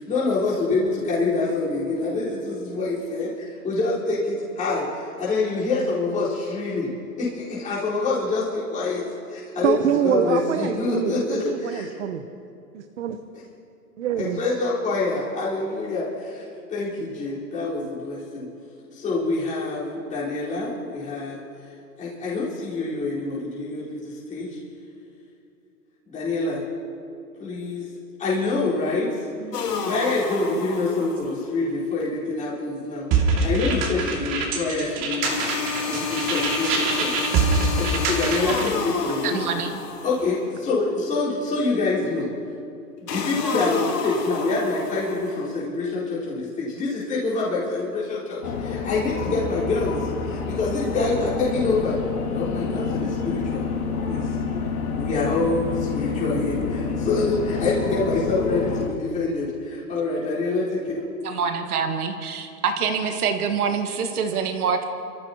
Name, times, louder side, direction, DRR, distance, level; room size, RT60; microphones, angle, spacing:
voice 1, 0.0-6.9 7.2-9.7 10.0-11.9 14.2-16.4 16.7-18.5 18.9-21.4 22.0-24.6 26.1-26.6 27.4-27.9 28.2-29.2 29.8-37.3 37.8-39.4 40.0-42.3 43.0-52.0 52.3-53.6 54.1-54.3 54.9-61.0, left 3 dB, 15° left, -9 dB, 4.6 m, -26 dB
voice 2, 9.6-12.2 12.7-13.2 14.0-14.4, right 9 dB, 50° right, 7 dB, 0.9 m, -25 dB
sound 1, 29.5-31.5 35.2-40.5 43.1-45.5, left 5 dB, 80° left, 2.7 m, -30 dB
sound 2, 33.1-38.7, right 3 dB, 25° right, 2.5 m, -24 dB
voice 3, 39.2-39.8 61.2-64.9, right 6 dB, 65° right, 5 dB, 1.9 m, -26 dB
sound 3, 48.4-58.9, left 5 dB, 65° left, 2.8 m, -28 dB
29.5 x 14.5 x 3.0 m, 2.6 s
hypercardioid pair, 145°, 47 cm